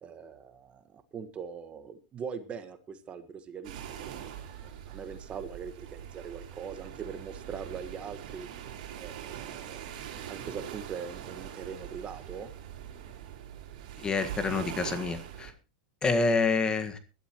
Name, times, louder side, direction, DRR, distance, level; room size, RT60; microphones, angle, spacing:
voice 1, 0.0-4.3 4.6-8.5 9.0-9.8 10.3-12.5, right 6 dB, 25° right, 10 dB, 1.4 m, -41 dB
sound 1, 3.6-15.5, right 10 dB, 65° right, 4.4 m, -42 dB
voice 2, 14.0-15.5 16.0-17.0, left 4 dB, 20° left, 9 dB, 1.6 m, -27 dB
20.0 x 12.5 x 3.0 m, 0.31 s
supercardioid pair, 130°, 4 cm